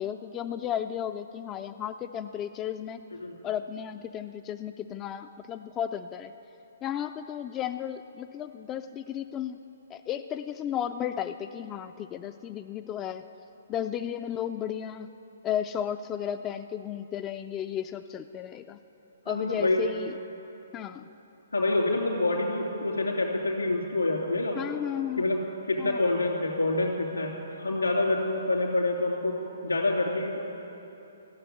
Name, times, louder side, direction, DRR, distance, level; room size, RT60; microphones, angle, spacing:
voice 1, 0.0-3.0 3.4-6.3 6.8-9.6 9.9-13.2 13.7-15.1 15.4-18.8 19.3-20.1 20.7-21.1 24.6-25.2 25.8-26.0, left 10 dB, 20° left, 8 dB, 0.3 m, -34 dB
voice 2, 19.3-19.8 21.5-24.6 25.2-25.4 25.7-29.4 29.6-30.4, left 2 dB, 80° left, -1 dB, 2.8 m, -27 dB
14.5 x 7.5 x 9.3 m, 3.0 s
figure-of-eight pair, 125°, 0 cm